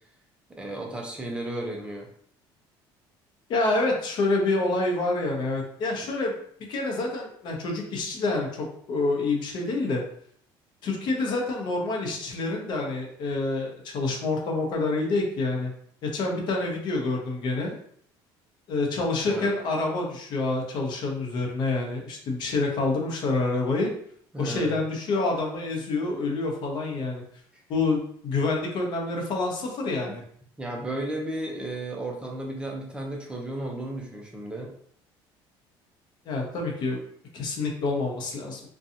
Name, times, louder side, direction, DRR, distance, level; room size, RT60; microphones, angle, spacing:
voice 1, 0.5-2.1 19.3-19.5 24.3-24.8 30.6-34.7, right 1 dB, 10° right, -1 dB, 0.4 m, -33 dB
voice 2, 3.5-6.3 6.7-10.0 10.8-15.7 16.0-17.8 18.7-23.9 24.4-27.2 27.7-30.2 36.3-37.0 37.3-38.6, left 3 dB, 50° left, 1 dB, 0.7 m, -27 dB
2.7 x 2.2 x 2.5 m, 0.63 s
cardioid pair, 135°, 9 cm